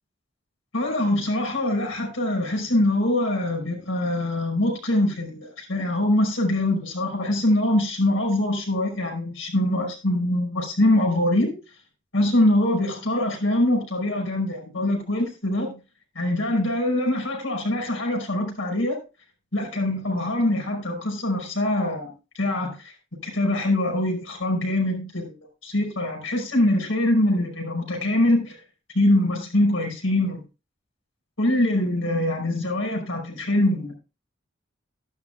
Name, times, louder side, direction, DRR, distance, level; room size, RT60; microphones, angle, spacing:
voice 1, 0.7-11.5 12.1-15.7 16.2-19.0 19.5-22.9 23.2-25.3 25.6-28.6 28.9-30.4 31.4-33.9, left 1 dB, 80° left, 1 dB, 5.4 m, -23 dB
12.5 x 12.0 x 2.2 m, 0.30 s
head